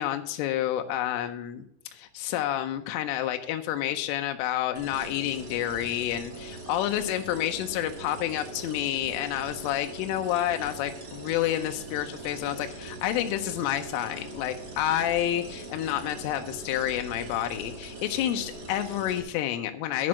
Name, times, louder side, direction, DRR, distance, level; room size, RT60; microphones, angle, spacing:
voice 1, 0.0-1.6 1.9-20.1, left 12 dB, 85° left, 6 dB, 3.2 m, -29 dB
sound 1, 4.7-19.2, right 3 dB, 35° right, 2.9 m, -41 dB
10.0 x 6.1 x 6.2 m, 0.74 s
omnidirectional pair, 5.6 m